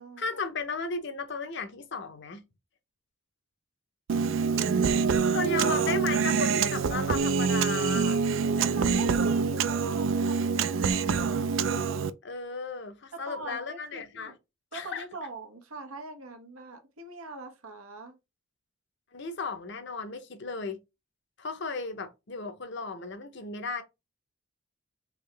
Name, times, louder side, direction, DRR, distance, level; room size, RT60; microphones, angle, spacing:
voice 1, 0.2-2.4 5.3-8.2 12.2-14.3 14.7-15.0 19.1-20.8 21.4-23.8, left 4 dB, 55° left, 0.7 m, -35 dB
Human voice, 4.1-12.1, right 5 dB, 65° right, 0.3 m, -26 dB
voice 2, 8.6-11.5 13.1-14.3 14.7-18.2, right 3 dB, 90° right, 1.0 m, -42 dB
3.5 x 2.8 x 3.3 m
head